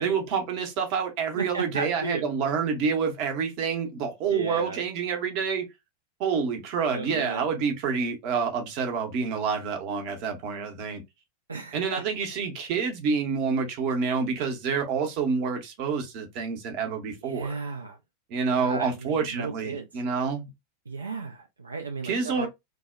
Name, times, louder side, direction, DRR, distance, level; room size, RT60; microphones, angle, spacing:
voice 1, 0.0-5.7 6.2-11.0 11.7-17.5 18.3-20.5 22.0-22.5, right 5 dB, 45° right, 0.7 m, -28 dB
voice 2, 1.3-2.3 4.3-4.8 6.9-7.5 11.5-12.0 17.2-18.0 18.5-19.9 20.9-22.5, right 4 dB, 75° right, 0.3 m, -34 dB
2.6 x 2.1 x 2.3 m
figure-of-eight pair, 90°, 0 cm